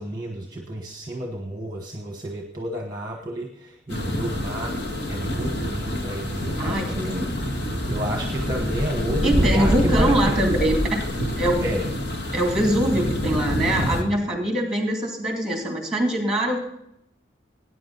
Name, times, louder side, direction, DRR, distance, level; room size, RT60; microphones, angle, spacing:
voice 1, 0.0-4.8 5.1-7.4 7.9-10.4 11.6-11.9, equal, 20° right, 2 dB, 1.2 m, -31 dB
sound 1, 3.9-14.0, equal, 65° left, 1.8 m, -26 dB
voice 2, 6.6-7.3 9.2-10.8 11.4-11.6 12.3-16.6, right 1 dB, 5° right, 2 dB, 2.6 m, -23 dB
18.0 x 9.7 x 4.0 m, 0.81 s
head